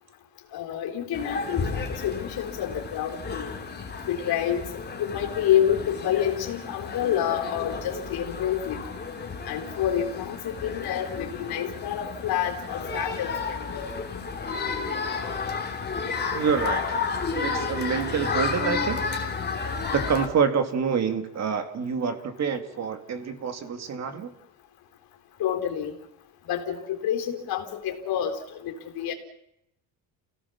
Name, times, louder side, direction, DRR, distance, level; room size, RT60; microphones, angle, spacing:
voice 1, 0.5-3.5 4.1-4.7 5.0-8.8 9.5-13.9 25.4-25.9 26.5-29.1, left 10 dB, 50° left, 3 dB, 4.0 m, -28 dB
sound 1, 1.1-20.3, left 4 dB, 20° left, 3.2 m, -32 dB
voice 2, 16.3-17.0 17.4-19.0 19.9-24.3, right 6 dB, 35° right, 8 dB, 2.5 m, -27 dB
29.0 x 17.0 x 7.2 m, 0.80 s
cardioid pair, 160°, 45 cm